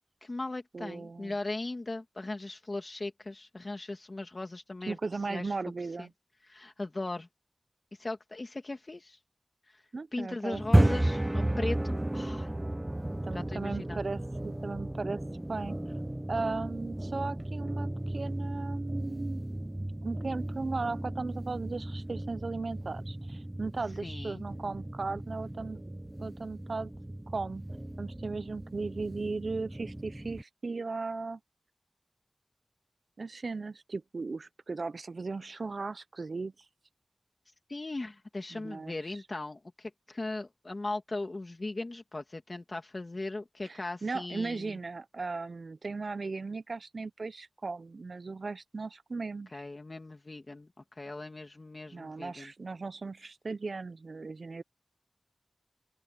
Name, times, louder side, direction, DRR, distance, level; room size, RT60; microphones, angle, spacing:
voice 1, 0.2-5.0 5.3-5.5 6.0-6.1 6.5-7.3 8.0-9.2 9.7-9.8 10.1-12.5 13.3-14.0 24.0-24.4 37.7-44.8 49.5-50.7 51.0-52.5, left 2 dB, 50° left, 2.0 m, -38 dB
voice 2, 0.7-1.3 4.9-6.1 9.9-10.9 13.2-15.2 15.5-15.8 16.3-19.4 19.8-25.8 26.2-26.9 27.3-27.6 28.0-31.4 33.2-36.5 38.5-39.0 43.6-49.7 51.9-54.6, right 3 dB, 75° right, 0.5 m, -37 dB
sound 1, 10.5-30.4, right 1 dB, 20° right, 0.7 m, -33 dB
open air
wide cardioid pair, 60°, 0 cm